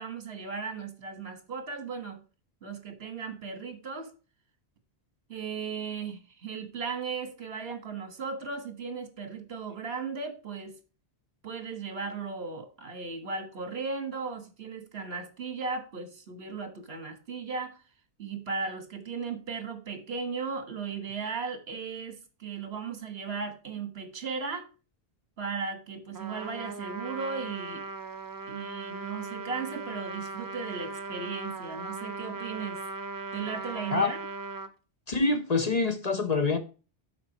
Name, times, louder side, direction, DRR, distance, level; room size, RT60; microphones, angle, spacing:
voice 1, 0.0-2.2 2.6-4.1 5.3-10.8 11.4-17.8 18.2-24.7 25.4-27.9 28.5-32.8 33.3-34.2, right 5 dB, 70° right, 1.7 m, -36 dB
Trumpet, 26.1-34.7, right 3 dB, 25° right, 0.5 m, -38 dB
voice 2, 35.1-36.6, left 3 dB, 40° left, 0.9 m, -25 dB
11.5 x 4.5 x 2.9 m
omnidirectional pair, 1.1 m